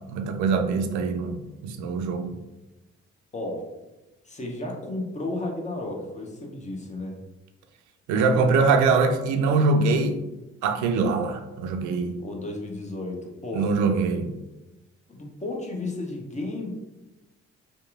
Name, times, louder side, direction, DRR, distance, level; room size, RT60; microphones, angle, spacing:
voice 1, 0.0-2.4 8.1-10.2 10.6-12.2 13.6-14.3, right 4 dB, 60° right, 6 dB, 0.5 m, -23 dB
voice 2, 4.2-7.2 12.2-13.7 15.1-16.7, left 2 dB, 20° left, 1 dB, 0.7 m, -33 dB
2.7 x 2.4 x 2.4 m, 1.0 s
hypercardioid pair, 50°, 33 cm